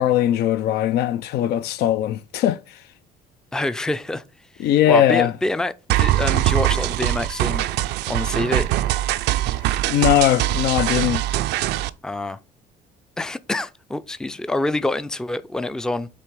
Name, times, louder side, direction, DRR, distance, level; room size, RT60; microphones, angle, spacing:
voice 1, 0.0-2.6 4.6-5.3 9.9-11.2, left 11 dB, 75° left, 0.4 m, -19 dB
voice 2, 3.5-4.2 4.6-7.6 8.1-8.7 12.0-12.4 13.2-16.1, left 2 dB, 5° left, 0.4 m, -26 dB
sound 1, 5.9-11.9, right 14 dB, 85° right, 0.4 m, -22 dB
8.4 x 3.4 x 4.6 m
cardioid pair, 110°, 17 cm